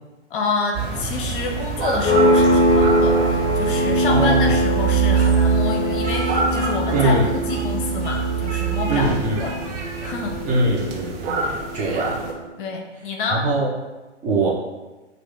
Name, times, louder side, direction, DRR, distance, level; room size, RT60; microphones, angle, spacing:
voice 1, 0.3-9.1 9.4-9.6 10.0-10.4 12.6-13.4, left 4 dB, 45° left, 2 dB, 0.7 m, -28 dB
sound 1, 0.7-12.3, right 7 dB, 50° right, 0.9 m, -25 dB
sound 2, 2.0-12.4, equal, 15° left, 0.9 m, -22 dB
voice 2, 4.0-4.6 6.9-7.4 8.9-9.4 10.4-12.2 13.3-13.7 14.2-14.5, right 2 dB, 20° right, -3 dB, 0.7 m, -22 dB
Speech, 5.1-7.8 8.0-9.0 9.3-10.1, right 3 dB, 75° right, 1.0 m, -36 dB
4.7 x 2.5 x 3.6 m, 1.1 s
hypercardioid pair, 115°, 36 cm